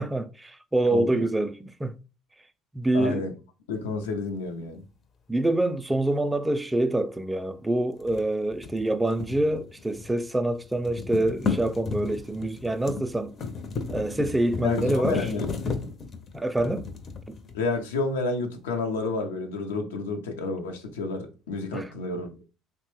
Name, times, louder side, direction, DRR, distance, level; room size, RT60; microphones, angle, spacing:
voice 1, 0.0-2.0 2.7-3.2 5.3-13.3 13.9-15.3 16.3-16.9 17.3-17.4 21.7-21.9, right 1 dB, 15° right, 0.3 m, -26 dB
voice 2, 0.9-1.2 2.9-3.3 3.7-4.8 14.6-15.5 15.8-15.9 17.5-22.4, left 3 dB, 90° left, 0.6 m, -30 dB
sound 1, 8.0-10.2 10.5-17.8, left 4 dB, 45° left, 0.6 m, -34 dB
3.1 x 2.1 x 3.0 m
hypercardioid pair, 70°, 0 cm